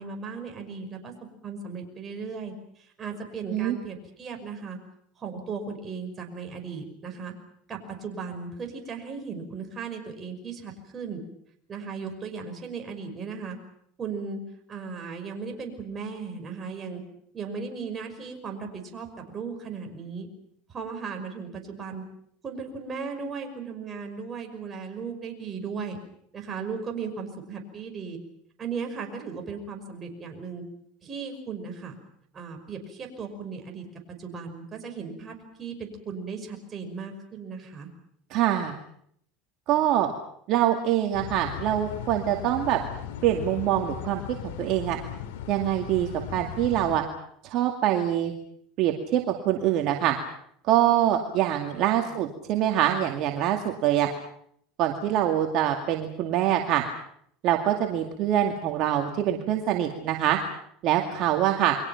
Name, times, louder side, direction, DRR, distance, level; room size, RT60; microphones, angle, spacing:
voice 1, 0.0-4.8 5.2-7.3 7.7-11.2 11.7-13.6 14.0-14.4 14.7-17.0 17.3-20.3 20.7-22.0 22.4-26.0 26.3-28.2 28.6-30.6 31.0-32.0 32.3-33.8 34.2-37.9 52.0-52.2, right 5 dB, 25° right, 3 dB, 5.8 m, -36 dB
voice 2, 38.3-38.7 39.7-40.1 40.5-42.8 43.2-44.2 44.6-45.0 45.5-47.0 47.4-48.3 48.8-50.2 50.7-54.1 54.8-56.8 57.4-60.4 60.8-61.8, right 12 dB, 55° right, 3 dB, 2.3 m, -24 dB
sound 1, 41.1-47.0, left 9 dB, 85° left, 2.9 m, -37 dB
29.0 x 23.5 x 5.9 m, 0.68 s
supercardioid pair, 120°, 0 cm